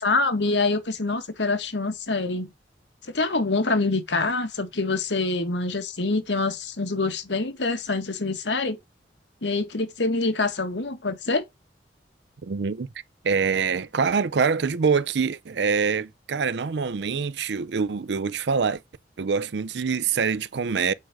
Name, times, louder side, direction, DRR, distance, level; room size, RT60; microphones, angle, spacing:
voice 1, 0.0-2.5 3.0-8.8 9.4-11.4, left 3 dB, 85° left, 1.7 m, -25 dB
voice 2, 12.4-12.9 13.2-18.8 19.2-20.9, right 5 dB, 75° right, 0.5 m, -25 dB
8.4 x 4.8 x 6.1 m
head